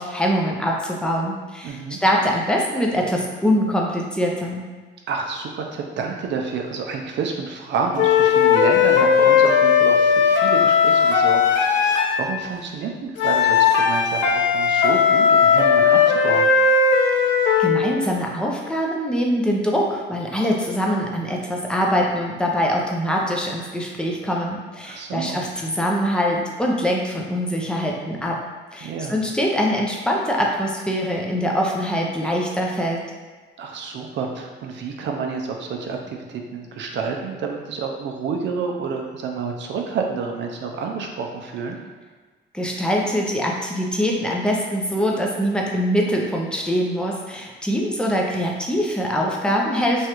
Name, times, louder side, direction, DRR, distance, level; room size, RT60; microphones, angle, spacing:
voice 1, 0.0-4.6 17.6-28.4 28.7-33.0 42.5-50.1, equal, 5° left, -2 dB, 0.5 m, -23 dB
voice 2, 1.6-2.0 5.1-16.5 24.8-25.5 28.8-29.2 33.6-41.8, right 5 dB, 65° right, 2 dB, 0.5 m, -29 dB
sound 1, 8.0-12.3 13.2-17.8, left 6 dB, 70° left, 0.4 m, -17 dB
3.1 x 2.3 x 2.9 m, 1.4 s
cardioid pair, 90°, 20 cm